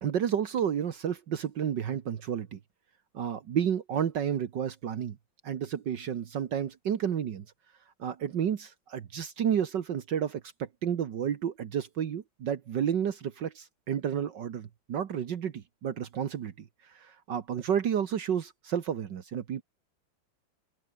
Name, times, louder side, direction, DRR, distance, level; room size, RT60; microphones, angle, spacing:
voice 1, 0.0-2.6 3.1-5.2 5.4-7.5 8.0-19.6, right 8 dB, 65° right, 1.9 m, -31 dB
open air
omnidirectional pair, 2.1 m